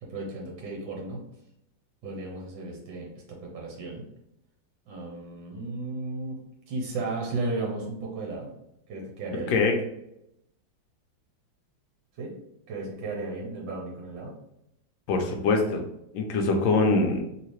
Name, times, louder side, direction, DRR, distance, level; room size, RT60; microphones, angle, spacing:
voice 1, 0.0-1.2 2.0-4.0 4.9-6.4 6.7-8.5 8.9-9.6 12.2-12.3 12.7-14.3, right 2 dB, 85° right, -2 dB, 1.7 m, -34 dB
voice 2, 15.1-15.8 16.1-17.2, left 3 dB, 75° left, 3 dB, 1.4 m, -23 dB
3.7 x 2.8 x 3.1 m, 0.80 s
omnidirectional pair, 2.1 m